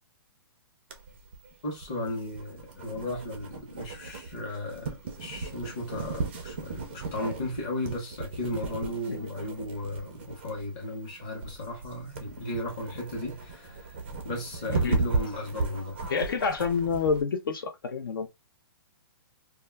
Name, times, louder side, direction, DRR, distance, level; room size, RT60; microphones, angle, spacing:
sound 1, 0.9-17.2, right 4 dB, 25° right, 0.4 m, -36 dB
voice 1, 1.6-16.0, left 1 dB, 20° left, 0.7 m, -35 dB
voice 2, 16.1-18.3, left 5 dB, 60° left, 0.5 m, -28 dB
2.2 x 2.1 x 3.3 m
hypercardioid pair, 180°, 13 cm